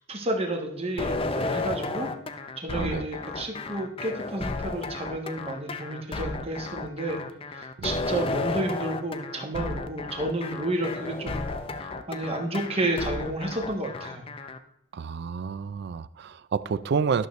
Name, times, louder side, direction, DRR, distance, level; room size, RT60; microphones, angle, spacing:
voice 1, 0.1-2.1 2.6-7.2 7.5-11.5 11.8-14.2, right 1 dB, 30° right, 2 dB, 1.2 m, -31 dB
sound 1, 1.0-14.6, left 3 dB, 25° left, 0.5 m, -33 dB
voice 2, 2.8-3.1 7.8-8.0 14.9-17.3, right 5 dB, 55° right, 16 dB, 0.3 m, -29 dB
12.0 x 6.5 x 3.1 m, 0.83 s
head